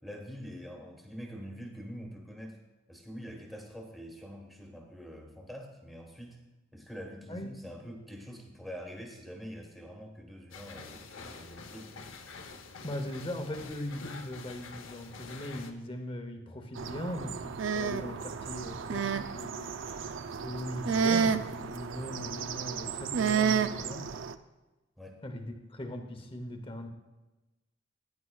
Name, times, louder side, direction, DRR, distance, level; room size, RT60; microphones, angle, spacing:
voice 1, 0.0-2.6 2.9-6.4 6.7-12.1 25.0-25.2, equal, ahead, 1 dB, 1.3 m, -45 dB
sound 1, 10.5-15.7, left 4 dB, 70° left, 0.8 m, -47 dB
voice 2, 12.8-20.1 20.4-24.1 25.2-26.9, left 1 dB, 25° left, 5 dB, 0.8 m, -39 dB
sound 2, 16.8-24.4, right 6 dB, 65° right, 0.4 m, -31 dB
14.5 x 9.5 x 2.3 m, 1.1 s
head